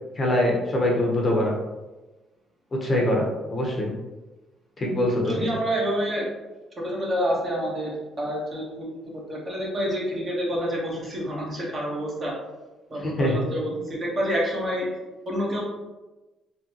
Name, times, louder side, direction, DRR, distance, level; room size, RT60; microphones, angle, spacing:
voice 1, 0.2-1.5 2.8-3.9 4.8-5.5 13.0-13.3, left 1 dB, 30° left, -1 dB, 0.8 m, -23 dB
voice 2, 5.2-6.3 6.8-8.9 9.1-12.3 12.9-15.0 15.2-15.6, equal, 35° right, -3 dB, 1.2 m, -28 dB
3.7 x 3.4 x 2.9 m, 1.1 s
cardioid pair, 125°, 0 cm